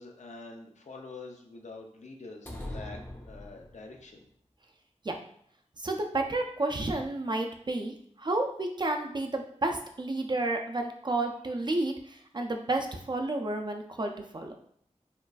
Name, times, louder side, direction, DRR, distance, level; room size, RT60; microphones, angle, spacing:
voice 1, 0.0-3.0 3.3-4.2, left 3 dB, 90° left, 2 dB, 0.6 m, -46 dB
sound 1, 2.5-4.1, left 1 dB, 15° left, 0.6 m, -41 dB
voice 2, 5.8-14.6, right 2 dB, 40° right, 3 dB, 0.4 m, -31 dB
4.4 x 2.4 x 2.3 m, 0.64 s
wide cardioid pair, 85°, 12 cm